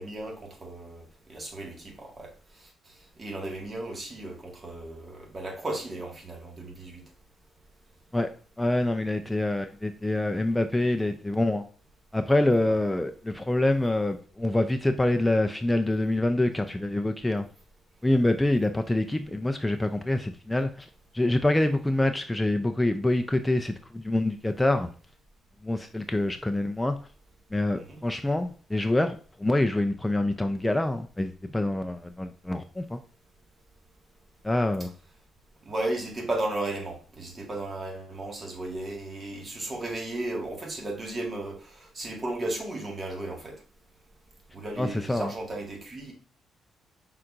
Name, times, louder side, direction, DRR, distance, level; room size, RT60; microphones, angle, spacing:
voice 1, 0.0-2.3 2.6-2.7 3.2-7.0 12.6-12.8 27.7-28.0 35.6-43.6 44.5-46.1, right 2 dB, 30° right, 1.6 m, -35 dB
voice 2, 8.6-11.6 12.1-17.4 18.0-20.7 21.1-24.9 25.6-27.0 27.5-33.0 34.4-34.9 44.8-45.3, left 1 dB, 10° left, 0.4 m, -26 dB
5.7 x 3.8 x 2.4 m
cardioid pair, 90°, 0 cm